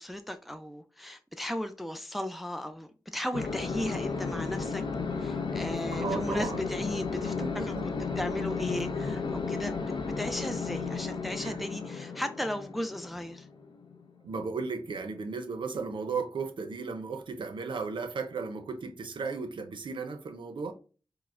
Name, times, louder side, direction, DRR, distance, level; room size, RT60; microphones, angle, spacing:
voice 1, 0.0-4.8 5.2-7.3 8.2-9.7 10.2-13.5, left 1 dB, ahead, 0.3 m, -36 dB
sound 1, 3.3-14.4, left 4 dB, 85° left, 0.4 m, -34 dB
voice 2, 5.9-6.6 7.4-7.9 11.4-11.9 14.2-20.7, right 4 dB, 90° right, 0.5 m, -35 dB
4.7 x 2.0 x 2.4 m
cardioid pair, 55°, 8 cm